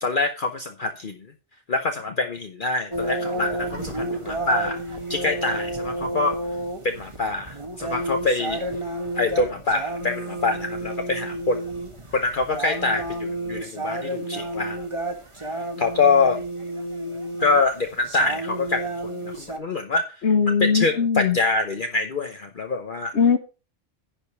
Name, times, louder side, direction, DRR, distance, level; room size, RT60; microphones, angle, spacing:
voice 1, 0.0-1.2 1.7-4.8 5.1-6.4 6.8-8.6 9.2-11.6 12.1-14.8 15.8-16.4 17.4-19.1 19.4-20.0 20.6-23.1, left 3 dB, 50° left, 5 dB, 1.0 m, -25 dB
sound 1, 2.9-19.6, right 1 dB, 25° right, 1.6 m, -31 dB
voice 2, 20.2-21.4 23.1-23.4, left 6 dB, 70° left, 8 dB, 1.4 m, -20 dB
10.5 x 5.2 x 6.4 m, 0.33 s
omnidirectional pair, 1.2 m